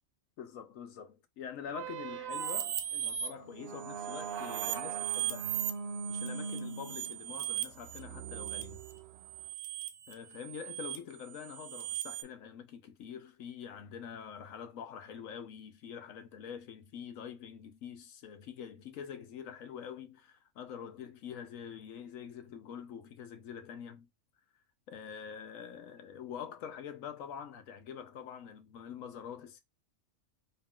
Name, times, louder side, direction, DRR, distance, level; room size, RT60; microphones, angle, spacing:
voice 1, 0.4-5.6 6.1-8.8 10.1-24.1 24.9-29.6, left 8 dB, 80° left, 1.1 m, -45 dB
sound 1, 1.7-9.5, right 5 dB, 60° right, 0.8 m, -42 dB
sound 2, 2.3-3.3 3.7-12.2, right 12 dB, 80° right, 1.1 m, -38 dB
4.0 x 2.4 x 3.7 m
omnidirectional pair, 1.4 m